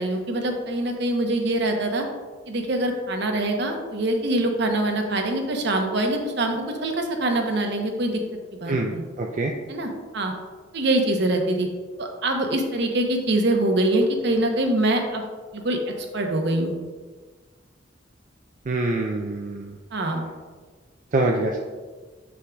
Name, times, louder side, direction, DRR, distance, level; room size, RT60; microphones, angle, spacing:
voice 1, 0.0-2.1 2.5-8.2 8.5-9.0 9.7-10.3 10.7-11.7 12.0-15.2 15.5-16.7 19.9-20.3, right 1 dB, 60° right, 3 dB, 0.8 m, -24 dB
voice 2, 8.7-9.5 18.7-19.8 21.1-21.6, right 2 dB, 45° right, 0 dB, 0.4 m, -25 dB
6.9 x 6.4 x 2.3 m, 1.4 s
head